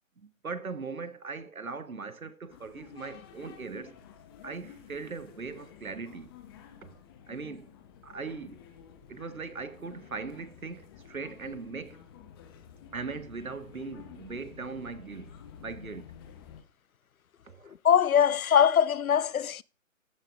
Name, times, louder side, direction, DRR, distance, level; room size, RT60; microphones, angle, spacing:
voice 1, 0.2-3.9 4.4-6.3 6.8-6.9 7.3-7.7 8.0-8.6 9.1-12.0 12.9-15.4 15.6-16.1 17.4-17.7, right 4 dB, 85° right, 1.3 m, -39 dB
sound 1, 2.5-16.6, left 8 dB, 20° left, 0.9 m, -51 dB
voice 2, 17.8-19.6, left 8 dB, 90° left, 0.5 m, -22 dB
14.5 x 8.5 x 2.5 m
figure-of-eight pair, 140°, 41 cm